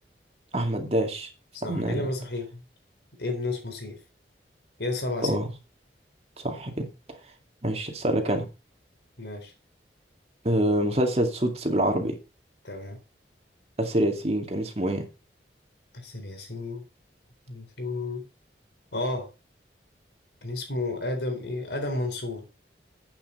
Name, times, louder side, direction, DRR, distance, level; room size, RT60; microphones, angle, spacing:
voice 1, 0.5-1.3 1.7-2.0 5.2-5.5 6.4-6.9 7.6-8.5 10.4-12.2 13.8-15.1, right 1 dB, 35° right, 2.2 m, -26 dB
voice 2, 1.5-2.6 3.2-4.0 4.8-5.4 9.2-9.5 12.6-13.0 15.9-16.8 17.5-18.3 18.9-19.3 20.4-22.5, left 2 dB, 75° left, 4.0 m, -32 dB
10.5 x 8.8 x 4.3 m
head